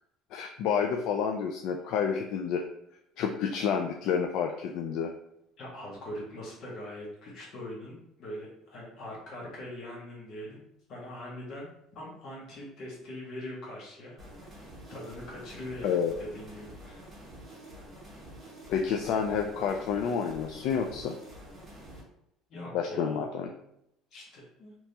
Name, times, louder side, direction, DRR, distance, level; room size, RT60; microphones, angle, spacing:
voice 1, 0.3-2.6 3.2-5.1 15.8-16.1 18.7-21.2 22.7-23.5, left 7 dB, 65° left, 3 dB, 0.3 m, -29 dB
voice 2, 5.6-10.6 10.9-14.6 14.9-17.0 22.5-23.3 24.1-24.8, left 1 dB, 50° left, -3 dB, 1.3 m, -42 dB
sound 1, 14.2-22.0, right 1 dB, 15° right, 1.4 m, -48 dB
3.3 x 2.9 x 2.8 m, 0.79 s
cardioid pair, 145°, 0 cm